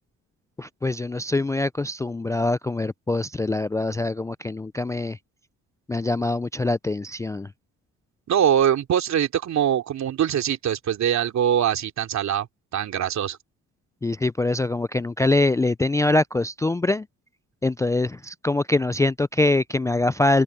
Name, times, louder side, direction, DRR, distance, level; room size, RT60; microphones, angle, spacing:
voice 1, 0.6-5.2 5.9-7.5 14.0-17.1 17.6-20.4, left 2 dB, 10° left, 0.3 m, -24 dB
voice 2, 8.3-12.5 12.7-13.4, right 9 dB, 65° right, 2.9 m, -22 dB
open air
cardioid pair, 90°, 30 cm